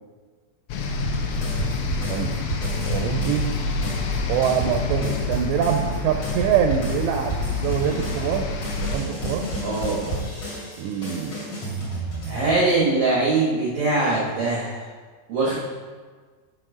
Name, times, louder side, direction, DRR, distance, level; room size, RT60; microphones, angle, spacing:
sound 1, 0.7-9.0, left 3 dB, 80° left, 2.9 m, -28 dB
sound 2, 1.3-3.6 3.8-12.8, right 1 dB, 35° left, 3.1 m, -31 dB
voice 1, 2.9-3.6 4.3-8.5 8.9-9.5 10.8-11.4, right 8 dB, 85° right, 4 dB, 2.7 m, -24 dB
voice 2, 9.6-10.2 11.7-11.8 12.2-14.8 15.3-15.6, right 3 dB, 65° right, -5 dB, 1.8 m, -22 dB
7.7 x 5.0 x 6.2 m, 1.5 s
omnidirectional pair, 5.1 m